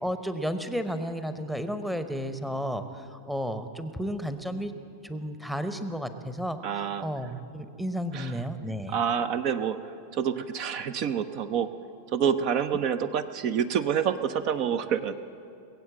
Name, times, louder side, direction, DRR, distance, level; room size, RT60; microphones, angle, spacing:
voice 1, 0.0-4.7 5.0-6.6 7.0-9.0, equal, ahead, 10 dB, 0.9 m, -32 dB
voice 2, 6.6-7.1 8.1-8.4 8.9-9.8 10.1-11.7 12.1-15.1, right 8 dB, 40° right, 12 dB, 0.6 m, -27 dB
21.0 x 7.9 x 7.8 m, 2.5 s
figure-of-eight pair, 90°, 0 cm